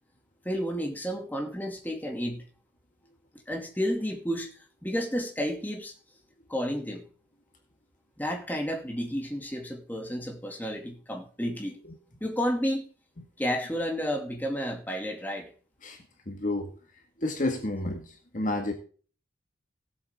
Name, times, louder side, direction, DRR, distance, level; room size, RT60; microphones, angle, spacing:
voice 1, 0.4-2.4 3.5-4.5 4.8-5.9 6.5-7.1 8.2-11.8 12.2-12.8 13.4-15.5, equal, 10° left, 2 dB, 2.5 m, -31 dB
voice 2, 15.8-16.7 17.2-18.7, left 2 dB, 45° left, 4 dB, 1.9 m, -31 dB
17.5 x 8.1 x 3.7 m, 0.40 s
head